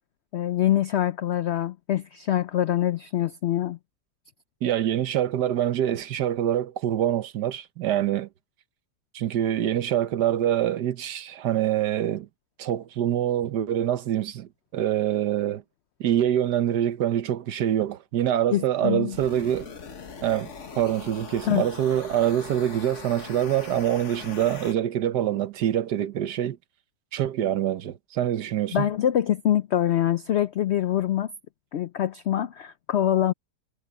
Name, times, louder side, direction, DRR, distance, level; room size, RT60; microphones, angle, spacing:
voice 1, 0.3-3.8 18.5-19.2 21.4-21.6 28.7-31.3 31.7-33.3, left 11 dB, 80° left, 0.6 m, -24 dB
voice 2, 4.6-8.3 9.1-12.3 12.6-15.6 16.0-19.7 20.2-26.6 27.1-28.9, right 11 dB, 75° right, 1.5 m, -25 dB
sound 1, 19.1-24.7, left 5 dB, 50° left, 1.6 m, -41 dB
omnidirectional pair, 1.8 m